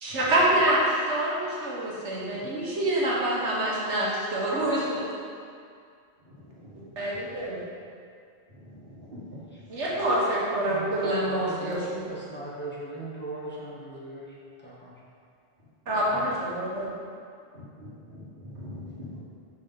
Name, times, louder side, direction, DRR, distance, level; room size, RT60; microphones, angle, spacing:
voice 1, 0.0-5.1 7.0-7.6 9.7-12.0 15.9-16.9, right 1 dB, 85° right, -6 dB, 1.6 m, -26 dB
voice 2, 6.3-6.8 8.5-9.1 17.5-19.2, left 1 dB, 50° right, -14 dB, 1.7 m, -44 dB
voice 3, 10.6-14.9 19.1-19.2, right 2 dB, 10° left, -7 dB, 1.1 m, -38 dB
5.5 x 4.0 x 5.5 m, 2.3 s
omnidirectional pair, 1.2 m